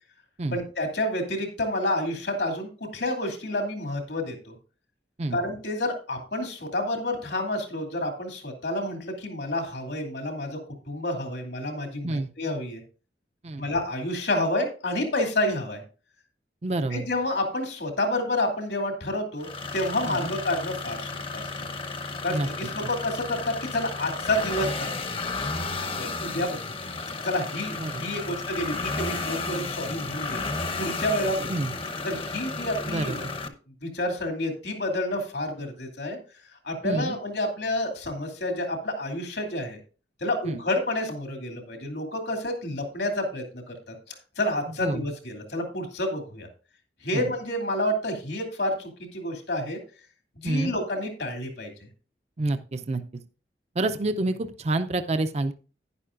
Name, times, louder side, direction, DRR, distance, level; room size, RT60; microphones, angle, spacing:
voice 1, 0.5-4.5 5.3-10.6 10.9-12.8 13.6-15.8 16.9-21.4 22.2-24.9 26.0-26.6 27.2-30.4 30.8-31.5 32.0-33.2 33.8-36.2 36.6-39.8 40.2-46.5 47.0-49.8 50.4-51.9, left 1 dB, 75° left, 3 dB, 2.6 m, -29 dB
voice 2, 16.6-17.1 20.1-20.3 22.3-22.5 22.8-22.9 27.7-28.0 31.5-31.7 32.9-33.3 36.8-37.2 40.4-40.6 44.8-45.0 47.1-47.3 50.4-50.7 52.4-53.2 53.8-55.5, right 2 dB, 40° right, 9 dB, 0.5 m, -28 dB
sound 1, 19.4-33.5, left 3 dB, 30° left, 0.8 m, -33 dB
11.0 x 10.5 x 2.5 m, 0.36 s
head